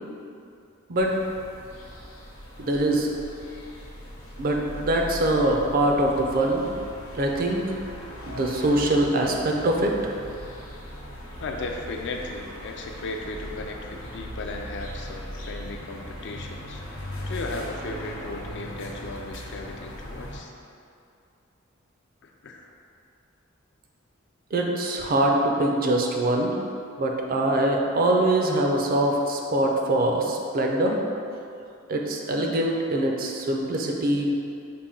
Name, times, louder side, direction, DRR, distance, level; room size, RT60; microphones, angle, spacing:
sound 1, 1.0-20.4, equal, 75° left, 0.8 m, -39 dB
voice 1, 2.6-3.1 4.4-6.6 7.2-7.6 8.2-10.1 24.5-26.6 27.0-31.0 31.9-34.3, right 1 dB, 45° right, 1 dB, 0.4 m, -23 dB
voice 2, 11.4-16.8 17.3-20.5 22.2-22.7, left 2 dB, 55° left, 2 dB, 0.4 m, -36 dB
5.7 x 2.2 x 3.7 m, 2.5 s
head